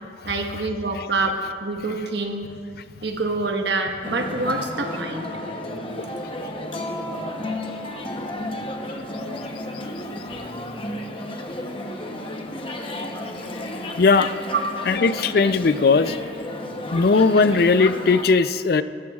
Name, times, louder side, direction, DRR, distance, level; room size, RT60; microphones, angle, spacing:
voice 1, 0.2-2.5 3.0-5.3, right 3 dB, 75° right, 3 dB, 1.3 m, -26 dB
sound 1, 4.0-18.2, left 1 dB, 30° left, 0.9 m, -32 dB
voice 2, 14.0-14.3 14.9-16.2 16.9-18.8, left 4 dB, 55° left, 13 dB, 0.4 m, -18 dB
19.5 x 14.0 x 2.4 m, 2.2 s
head